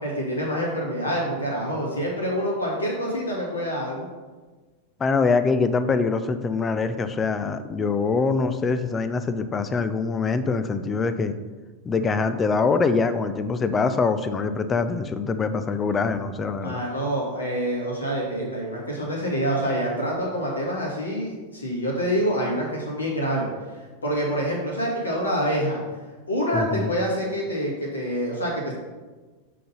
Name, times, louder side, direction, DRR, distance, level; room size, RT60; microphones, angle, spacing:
voice 1, 0.0-4.1 16.6-23.5 24.0-25.8 26.3-28.7, equal, 75° left, -3 dB, 2.3 m, -26 dB
voice 2, 5.0-11.3 11.8-16.8 26.5-26.9, left 4 dB, 20° left, 11 dB, 0.5 m, -24 dB
7.5 x 3.9 x 5.6 m, 1.3 s
figure-of-eight pair, 90°, 0 cm